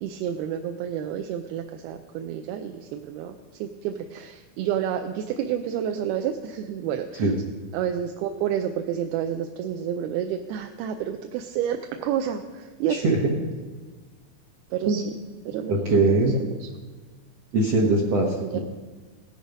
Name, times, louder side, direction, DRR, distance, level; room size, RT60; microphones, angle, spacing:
voice 1, 0.0-3.4 3.6-7.3 7.7-13.1 14.7-15.0 15.5-16.7 18.5-18.6, right 9 dB, 80° right, 5 dB, 2.5 m, -30 dB
voice 2, 12.9-13.5 14.9-15.0 15.7-16.3 17.5-18.6, right 2 dB, 65° right, -2 dB, 1.5 m, -22 dB
17.0 x 10.5 x 5.2 m, 1.4 s
omnidirectional pair, 4.5 m